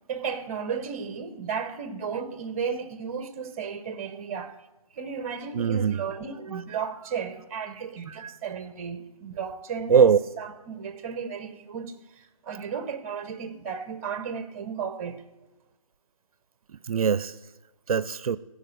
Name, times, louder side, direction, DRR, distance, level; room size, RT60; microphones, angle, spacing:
voice 1, 0.1-4.5 5.0-15.2, right 6 dB, 20° right, 0.6 m, -34 dB
voice 2, 5.5-6.0 6.5-6.6 8.2-8.3 9.9-10.2 16.9-17.3 17.9-18.4, right 7 dB, 65° right, 0.4 m, -21 dB
15.0 x 5.1 x 6.3 m
figure-of-eight pair, 150°, 20 cm